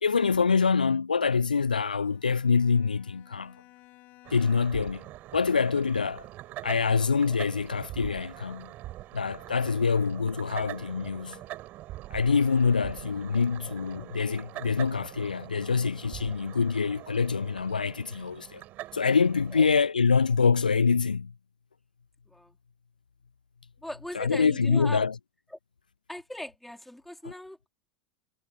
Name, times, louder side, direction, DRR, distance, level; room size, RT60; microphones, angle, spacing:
voice 1, 0.0-3.5 4.3-5.0 5.3-6.2 6.6-8.7 9.1-11.4 12.1-18.6 18.9-21.3 24.1-25.1 27.2-27.3, left 5 dB, 80° left, 0.3 m, -25 dB
Bowed string instrument, 1.8-5.0, left 19 dB, 45° left, 2.4 m, -57 dB
sound 1, 4.2-19.8, right 16 dB, 40° right, 3.9 m, -43 dB
voice 2, 23.8-25.0 25.5-25.6 26.1-27.7, left 1 dB, 5° left, 3.5 m, -39 dB
figure-of-eight pair, 80°, 4 cm